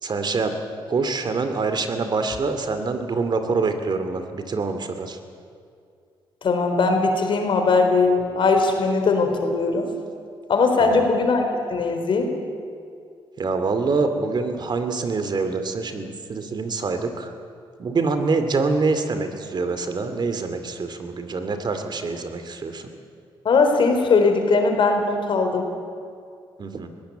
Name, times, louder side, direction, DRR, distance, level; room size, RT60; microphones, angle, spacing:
voice 1, 0.0-0.5 0.9-5.2 10.8-11.1 13.4-17.3 17.8-22.9 26.6-26.9, right 4 dB, 50° right, 8 dB, 2.4 m, -25 dB
voice 2, 6.4-9.9 10.5-11.4 11.7-12.3 23.4-25.7, left 4 dB, 55° left, 4 dB, 4.1 m, -20 dB
20.0 x 16.5 x 9.2 m, 2.3 s
cardioid pair, 75°, 10 cm